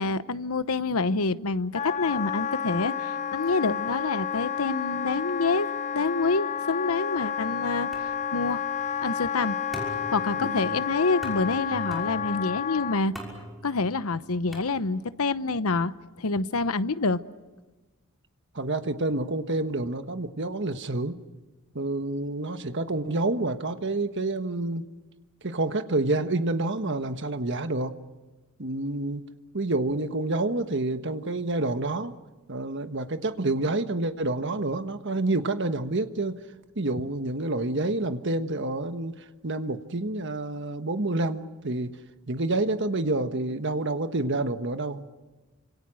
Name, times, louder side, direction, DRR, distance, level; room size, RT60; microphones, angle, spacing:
voice 1, 0.0-5.7 5.9-8.6 9.0-9.6 10.1-13.1 13.6-17.2, left 3 dB, 85° left, 14 dB, 0.9 m, -27 dB
Wind instrument woodwind instrument, 1.7-13.1, left 7 dB, 35° left, 0.8 m, -31 dB
sound 1, 7.9-15.3, equal, ahead, 6.1 m, -44 dB
voice 2, 10.3-10.8 18.5-21.1 21.7-24.9 25.4-28.0 28.6-29.3 29.5-32.1 32.5-36.4 36.7-39.2 39.4-41.9 42.3-45.1, right 2 dB, 55° right, 9 dB, 1.4 m, -28 dB
29.0 x 26.5 x 6.4 m, 1.2 s
head